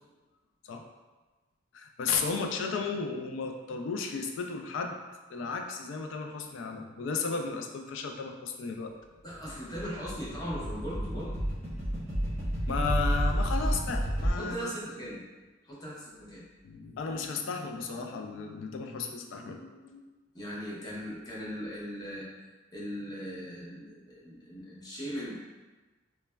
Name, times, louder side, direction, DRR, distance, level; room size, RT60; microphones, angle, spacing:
voice 1, 1.7-5.0 5.3-8.9 11.7-11.8 12.7-14.7 16.6-20.0, left 4 dB, 70° left, 4 dB, 0.3 m, -34 dB
voice 2, 9.2-11.4 14.4-15.2 15.6-16.4 20.3-22.3 22.7-25.4, equal, 20° left, -7 dB, 0.6 m, -39 dB
sound 1, 9.3-14.3, equal, 10° right, 0.8 m, -31 dB
3.1 x 2.1 x 2.2 m, 1.2 s
head